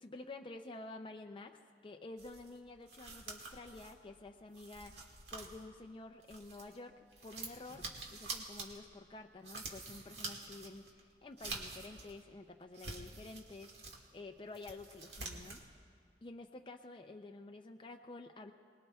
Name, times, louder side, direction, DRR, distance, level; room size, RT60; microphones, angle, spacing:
voice 1, 0.0-5.0 5.3-6.9 7.2-7.8 8.1-15.6 16.2-18.5, left 2 dB, 30° left, 4 dB, 0.5 m, -50 dB
sound 1, 2.2-6.8 7.1-12.2 12.6-14.0 14.4-15.7, right 3 dB, 70° right, 1.9 m, -47 dB
24.0 x 20.0 x 2.3 m, 2.1 s
head